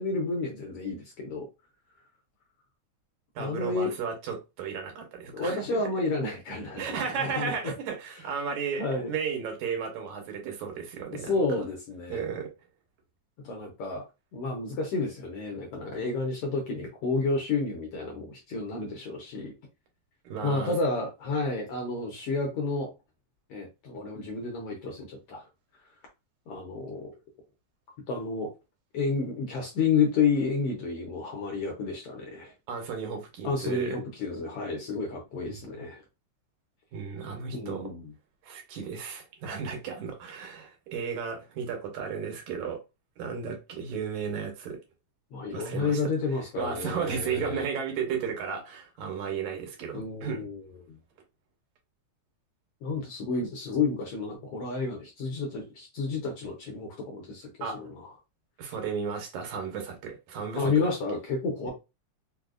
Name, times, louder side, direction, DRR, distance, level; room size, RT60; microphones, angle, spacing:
voice 1, 0.0-1.5 3.4-3.9 5.3-7.7 8.8-9.1 11.2-12.2 13.4-14.0 14.3-19.5 20.4-22.9 23.5-25.4 26.5-27.1 28.1-28.5 28.9-32.5 33.4-36.0 37.5-38.1 45.3-47.7 49.9-51.0 52.8-58.1 60.5-61.7, left 4 dB, 75° left, 1.4 m, -30 dB
voice 2, 3.4-5.9 6.8-11.3 12.1-12.5 20.2-20.7 32.7-34.0 34.7-34.8 35.5-35.9 36.9-37.9 38.4-42.8 43.2-44.8 45.5-46.0 46.6-50.5 57.6-57.8 58.6-60.9, right 6 dB, 85° right, 2.3 m, -34 dB
4.9 x 2.1 x 2.4 m
omnidirectional pair, 3.3 m